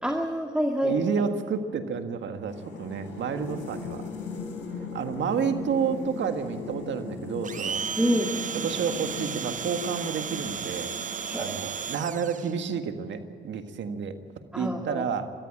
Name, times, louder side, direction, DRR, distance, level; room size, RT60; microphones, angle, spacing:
voice 1, 0.0-0.9 8.0-8.3 11.2-11.6 14.5-15.1, equal, 5° right, 3 dB, 2.1 m, -27 dB
voice 2, 0.8-4.1 4.9-7.8 8.5-10.9 11.4-14.2 14.5-15.3, right 6 dB, 75° right, 7 dB, 1.7 m, -30 dB
sound 1, 2.5-11.8, left 4 dB, 85° left, 4.5 m, -39 dB
Domestic sounds home sounds, 7.4-12.5, right 7 dB, 40° right, 0.6 m, -34 dB
22.5 x 14.5 x 8.8 m, 2.3 s
supercardioid pair, 50°, 19 cm